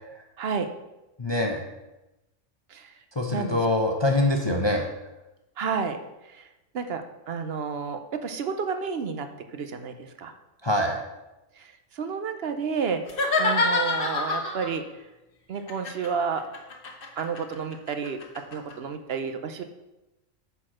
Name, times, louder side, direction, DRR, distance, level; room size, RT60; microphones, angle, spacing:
voice 1, 0.4-0.7 2.7-2.9 3.3-3.6 4.5-4.7 5.6-6.5 6.7-10.3 11.6-13.0 13.4-14.9 15.5-16.4 17.2-19.6, right 6 dB, 60° right, 8 dB, 0.8 m, -31 dB
voice 2, 1.2-1.6 3.1-4.8 10.6-11.0, left 1 dB, 25° left, 2 dB, 0.7 m, -24 dB
sound 1, 13.1-14.8 15.7-18.7, left 3 dB, 45° left, 1.1 m, -27 dB
8.5 x 4.7 x 6.1 m, 1.0 s
omnidirectional pair, 1.3 m